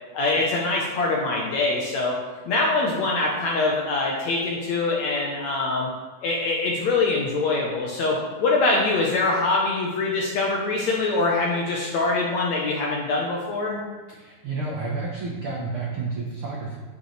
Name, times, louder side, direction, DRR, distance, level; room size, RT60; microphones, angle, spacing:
voice 1, 0.1-2.2 2.5-5.9 6.2-13.8, left 3 dB, 70° left, -2 dB, 1.8 m, -24 dB
voice 2, 14.2-16.8, right 3 dB, 70° right, -3 dB, 1.2 m, -30 dB
9.7 x 9.1 x 3.3 m, 1.3 s
omnidirectional pair, 4.3 m